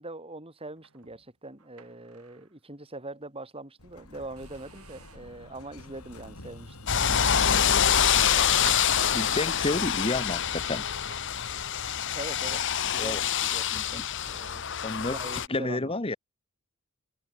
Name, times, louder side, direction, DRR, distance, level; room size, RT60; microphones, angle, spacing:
voice 1, 0.0-6.8 7.1-7.9 8.3-9.3 9.6-9.7 12.1-12.6 12.9-14.7 15.1-15.9, right 2 dB, 25° right, 4.5 m, -43 dB
sound 1, 0.8-2.6 3.0-3.2 3.7-3.9 4.4-5.4 6.0-6.3 7.0-8.0 8.6-9.6 10.4-12.8 13.0-13.3 13.9-14.0 14.4-14.9, right 5 dB, 90° right, 3.7 m, -50 dB
Explosion, 3.8-12.5, left 2 dB, 85° left, 5.6 m, -48 dB
sound 2, 6.9-15.5, left 8 dB, 60° left, 1.3 m, -26 dB
voice 2, 9.1-10.9 13.0-13.2 13.7-14.0 14.8-16.2, left 2 dB, 25° left, 1.2 m, -31 dB
head